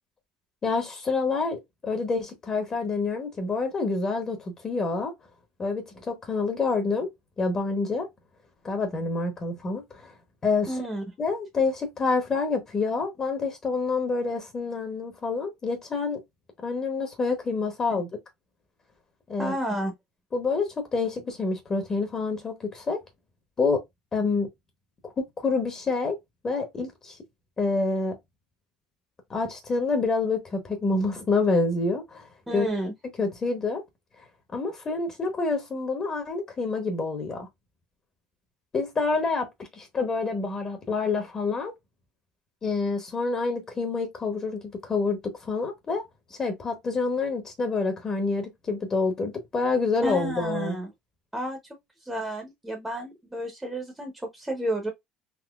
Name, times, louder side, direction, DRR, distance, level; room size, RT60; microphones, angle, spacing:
voice 1, 0.6-5.1 5.6-7.1 7.4-8.1 8.6-10.1 10.4-10.8 11.2-16.2 16.6-18.1 19.3-19.5 20.3-23.0 23.6-23.8 24.1-24.5 25.0-26.2 26.4-27.2 27.6-28.2 29.3-32.7 33.2-33.8 34.5-37.5 38.7-41.7 42.6-46.0 46.3-50.8, left 3 dB, 25° left, 0.8 m, -27 dB
voice 2, 10.7-11.0 19.4-19.9 32.5-32.9 50.0-50.9 51.3-51.6 52.0-54.9, right 1 dB, 5° right, 0.7 m, -31 dB
3.7 x 2.7 x 2.3 m
cardioid pair, 145°, 2 cm